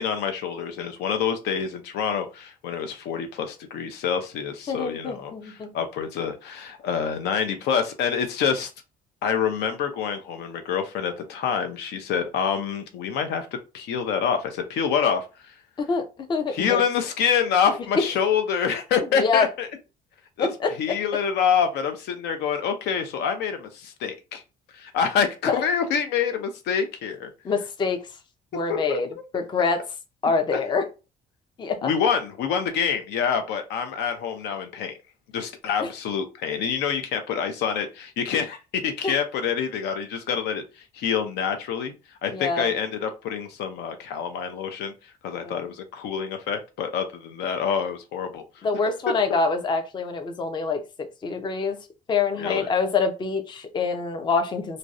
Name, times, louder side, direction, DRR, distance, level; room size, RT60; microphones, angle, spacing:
voice 1, 0.0-8.7 9.2-13.5 13.7-15.5 16.5-19.7 20.4-20.5 20.8-24.4 24.7-27.3 28.7-29.0 30.5-30.6 31.8-35.0 35.3-41.9 42.2-44.9 45.2-48.7 52.4-52.7, left 7 dB, 80° left, 7 dB, 0.5 m, -26 dB
voice 2, 4.7-5.7 15.8-16.8 19.1-19.5 20.4-21.0 25.5-25.6 27.4-28.1 28.5-29.8 30.2-30.8 31.6-31.9 35.8-35.9 39.0-39.1 42.3-42.7 45.4-45.6 48.6-50.8 51.2-51.8 52.1-54.8, left 4 dB, 25° left, 7 dB, 0.4 m, -25 dB
2.6 x 2.0 x 2.3 m, 0.29 s
cardioid pair, 110°, 17 cm